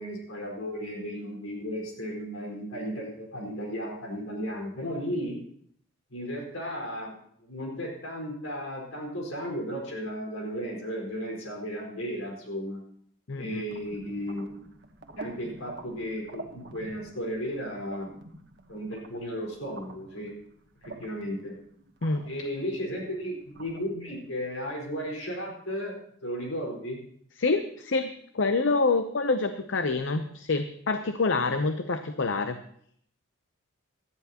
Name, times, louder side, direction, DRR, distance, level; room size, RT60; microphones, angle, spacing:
voice 1, 0.0-5.4 6.1-12.8 13.3-14.5 15.2-18.1 18.7-20.3 20.8-21.6 22.2-25.9 26.2-27.0, equal, 80° left, -1 dB, 4.5 m, -34 dB
voice 2, 13.3-13.6 22.0-22.3 27.4-32.6, left 3 dB, 65° left, 8 dB, 0.6 m, -27 dB
sound 1, 13.7-24.8, right 2 dB, 55° right, 1.1 m, -48 dB
18.0 x 12.0 x 2.9 m, 0.65 s
head